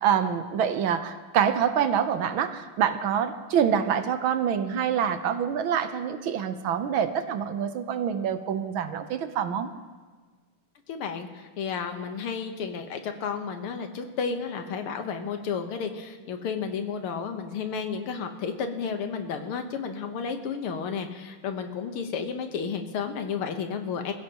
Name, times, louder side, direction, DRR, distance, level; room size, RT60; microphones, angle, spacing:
voice 1, 0.0-9.7, right 8 dB, 70° right, 9 dB, 1.6 m, -26 dB
voice 2, 10.9-24.1, left 6 dB, 80° left, 6 dB, 2.0 m, -32 dB
26.0 x 15.5 x 3.0 m, 1.4 s
omnidirectional pair, 2.4 m